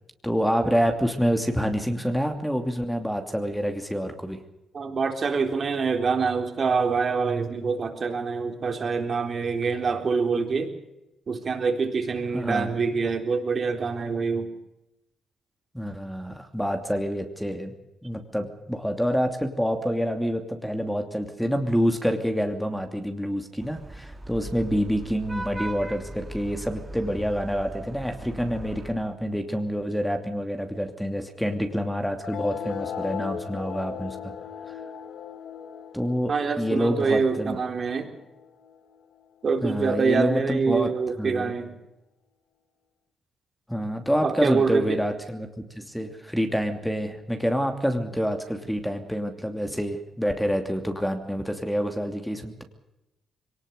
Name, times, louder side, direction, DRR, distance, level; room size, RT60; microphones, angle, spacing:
voice 1, 0.2-4.4 12.3-12.7 15.7-17.7 18.0-34.3 34.7-34.8 35.9-37.6 39.6-40.9 41.2-41.5 43.7-52.6, equal, ahead, 6 dB, 2.8 m, -27 dB
voice 2, 4.7-10.7 11.3-14.5 36.3-38.1 39.4-41.7 44.2-45.0, right 5 dB, 45° right, 5 dB, 3.9 m, -25 dB
Vehicle horn car horn honking / Traffic noise roadway noise, 23.6-28.9, right 1 dB, 15° right, 2.9 m, -39 dB
sound 1, 32.2-39.2, left 7 dB, 70° left, 1.7 m, -38 dB
22.5 x 19.0 x 6.7 m, 0.91 s
cardioid pair, 90°, 0 cm